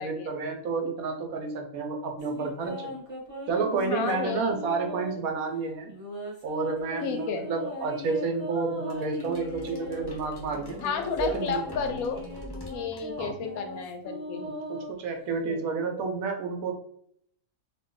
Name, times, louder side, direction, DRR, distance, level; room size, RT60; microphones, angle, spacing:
voice 1, 0.0-2.9 3.5-5.9 6.4-10.8 11.2-11.6 13.2-13.4 14.4-16.7, right 4 dB, 75° right, 3 dB, 1.1 m, -30 dB
sound 1, 2.2-5.3 5.9-10.1 10.7-15.4, left 1 dB, 30° right, 0.7 m, -39 dB
voice 2, 3.8-4.5 7.0-7.5 10.8-12.2 12.7-14.5 15.5-15.6, left 6 dB, 80° left, 5 dB, 1.1 m, -32 dB
sound 2, 8.9-13.7, equal, 30° left, 0.4 m, -43 dB
2.9 x 2.2 x 3.6 m, 0.67 s
omnidirectional pair, 1.5 m